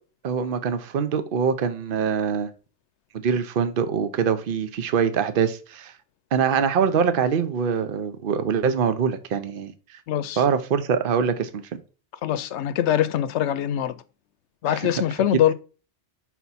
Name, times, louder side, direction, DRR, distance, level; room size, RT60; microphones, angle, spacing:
voice 1, 0.2-2.5 3.1-5.9 6.3-10.0 10.4-11.7 14.7-14.8, right 6 dB, 55° right, 0.8 m, -24 dB
voice 2, 10.1-10.4 12.2-13.9 14.6-15.5, left 11 dB, 85° left, 0.9 m, -23 dB
5.7 x 4.2 x 4.1 m
omnidirectional pair, 1.1 m